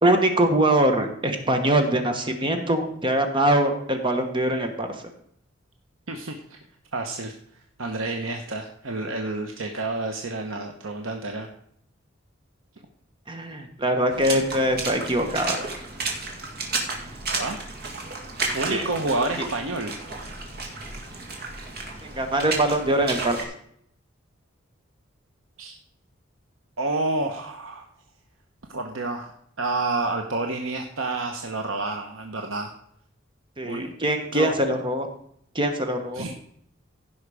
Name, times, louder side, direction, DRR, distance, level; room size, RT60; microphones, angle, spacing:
voice 1, 0.0-4.9 13.3-15.6 18.7-18.9 22.2-23.4 33.6-35.1 35.5-36.2, right 1 dB, 25° right, 5 dB, 1.2 m, -23 dB
voice 2, 6.1-6.6 6.9-11.5 17.3-17.6 18.5-20.0 25.6-25.7 26.8-27.9 28.7-29.3 29.6-32.7 33.6-33.9 34.3-34.5 36.1-36.3, right 2 dB, 80° right, 4 dB, 1.0 m, -29 dB
Water / Splash splatter, 14.1-23.4, right 3 dB, 50° right, 2.1 m, -32 dB
16.0 x 5.7 x 4.9 m, 0.69 s
head